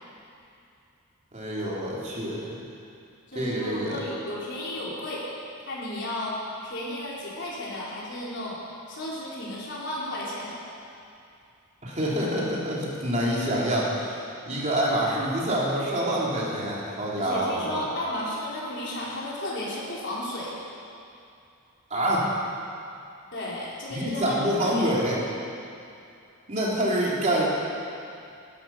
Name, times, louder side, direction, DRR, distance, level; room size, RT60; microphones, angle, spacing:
voice 1, 1.3-2.6 3.3-4.0 11.8-17.8 21.9-22.3 23.9-25.2 26.5-27.5, right 1 dB, 35° right, -5 dB, 3.1 m, -26 dB
voice 2, 3.3-5.2 5.6-6.4 6.6-8.6 8.9-10.6 17.2-20.5 23.3-24.9, left 1 dB, 55° left, -6 dB, 4.2 m, -33 dB
19.0 x 12.0 x 5.7 m, 2.6 s
head